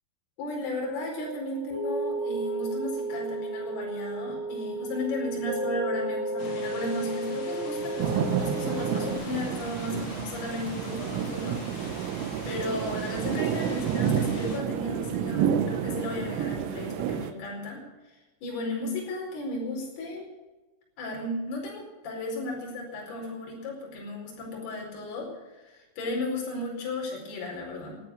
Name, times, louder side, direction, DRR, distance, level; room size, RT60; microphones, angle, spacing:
voice 1, 0.4-12.1 12.4-17.8 18.4-20.3 21.0-28.0, left 2 dB, 50° left, -1 dB, 6.5 m, -35 dB
sound 1, 1.1-9.1, right 2 dB, 50° right, 3.6 m, -33 dB
sound 2, 6.4-14.6, left 3 dB, 65° left, 5.2 m, -44 dB
sound 3, 8.0-17.3, right 8 dB, 80° right, 3.6 m, -30 dB
17.0 x 11.5 x 6.4 m, 1.1 s
omnidirectional pair, 5.9 m